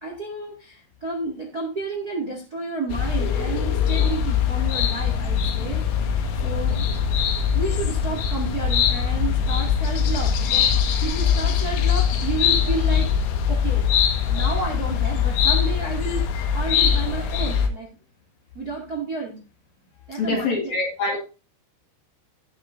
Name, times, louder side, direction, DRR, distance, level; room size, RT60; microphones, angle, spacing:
voice 1, 0.0-5.8 6.4-6.9 7.5-13.9 14.3-18.0 18.5-19.4 20.1-20.8, right 3 dB, 30° right, 1 dB, 1.9 m, -31 dB
sound 1, 2.9-17.7, left 7 dB, 80° left, 3.9 m, -22 dB
voice 2, 20.2-21.2, left 3 dB, 50° left, 1 dB, 2.8 m, -24 dB
17.0 x 7.2 x 2.6 m, 0.33 s
omnidirectional pair, 5.2 m